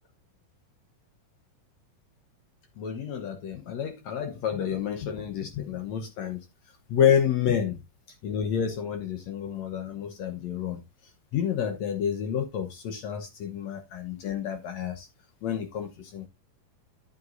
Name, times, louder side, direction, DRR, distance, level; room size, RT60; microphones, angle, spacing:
voice 1, 2.8-6.4 6.9-7.8 8.2-10.8 11.3-15.1 15.4-16.3, left 8 dB, 65° left, 1.8 m, -29 dB
11.0 x 7.9 x 2.5 m
omnidirectional pair, 4.1 m